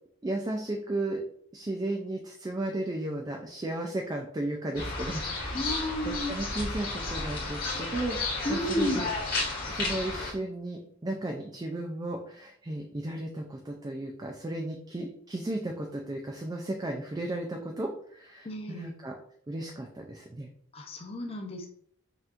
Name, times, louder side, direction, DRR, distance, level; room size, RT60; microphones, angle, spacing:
voice 1, 0.2-1.2 1.5-5.6 6.3-8.2 8.5-9.1 9.7-19.1 19.5-20.5, right 1 dB, 20° right, 2 dB, 0.3 m, -34 dB
sound 1, 4.7-10.3, left 3 dB, 45° left, 1.7 m, -33 dB
voice 2, 5.5-6.3 8.4-9.0 18.4-18.9 20.7-21.7, left 1 dB, 30° left, 2 dB, 0.6 m, -32 dB
5.6 x 2.9 x 2.5 m, 0.65 s
head